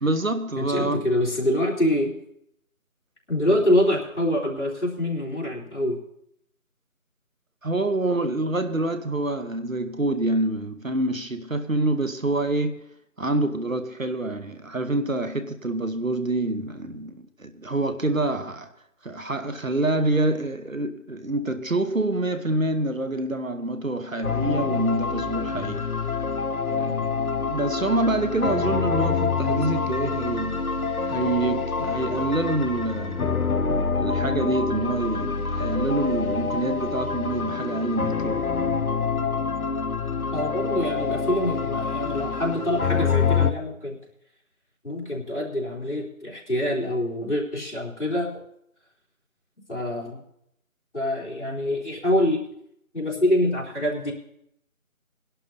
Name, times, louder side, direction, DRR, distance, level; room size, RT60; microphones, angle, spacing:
voice 1, 0.0-1.0 7.6-12.8 13.2-18.7 19.0-25.9 26.7-30.7 31.0-33.3 34.0-38.5, right 2 dB, 65° right, 1.1 m, -26 dB
voice 2, 0.6-2.2 3.3-6.0 40.3-44.0 44.8-48.4 49.7-50.2 50.9-52.4 52.9-54.1, left 1 dB, 50° left, 3.4 m, -25 dB
sound 1, 24.2-43.5, left 5 dB, 80° left, 0.9 m, -26 dB
22.0 x 11.5 x 2.7 m
figure-of-eight pair, 180°, 43 cm